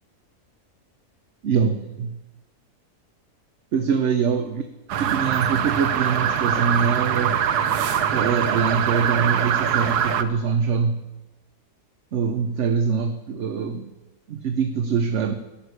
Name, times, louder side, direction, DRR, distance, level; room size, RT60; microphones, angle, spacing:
voice 1, 1.4-2.2 3.7-4.6 5.0-7.4 8.1-11.1 12.1-13.9 14.3-15.3, right 6 dB, 55° right, 8 dB, 1.0 m, -24 dB
sound 1, 4.9-10.2, right 8 dB, 85° right, 1.4 m, -23 dB
14.0 x 6.5 x 9.6 m, 1.1 s
omnidirectional pair, 1.6 m